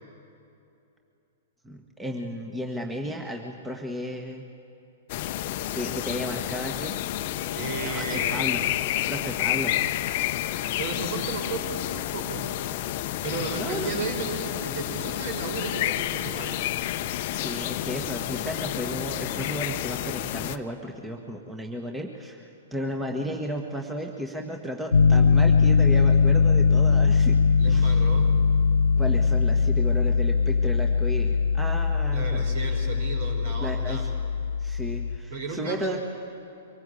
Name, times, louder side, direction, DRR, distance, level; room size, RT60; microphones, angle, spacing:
voice 1, 1.6-4.5 5.7-6.9 7.8-8.6 9.1-9.8 13.5-14.1 17.3-27.4 27.6-28.1 29.0-32.5 32.8-33.0 33.6-34.1 34.6-36.0, equal, 10° right, 2 dB, 1.5 m, -34 dB
sound 1, 5.1-20.6, left 14 dB, 50° left, 0.7 m, -30 dB
voice 2, 7.5-8.5 10.8-12.5 13.2-16.6 27.6-28.3 32.1-34.1 35.3-36.0, right 3 dB, 60° right, 3 dB, 4.9 m, -34 dB
Piano, 24.9-35.2, left 5 dB, 80° left, 0.4 m, -21 dB
23.5 x 19.0 x 8.4 m, 2.8 s
figure-of-eight pair, 110°, 0 cm